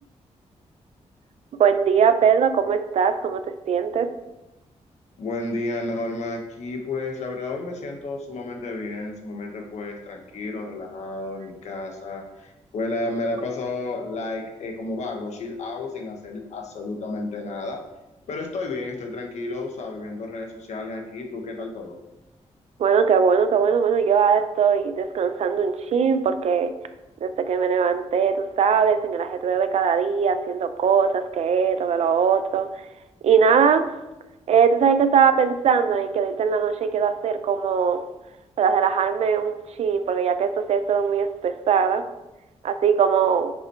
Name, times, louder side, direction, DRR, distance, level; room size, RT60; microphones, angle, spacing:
voice 1, 1.6-4.1 22.8-26.7 27.2-32.7 33.2-33.9 34.5-38.0 38.6-42.0 42.6-43.5, right 6 dB, 65° right, 9 dB, 0.6 m, -21 dB
voice 2, 5.2-17.8 18.3-22.0, left 2 dB, 70° left, 2 dB, 1.5 m, -31 dB
10.0 x 6.1 x 3.2 m, 1.0 s
wide cardioid pair, 175°, 12 cm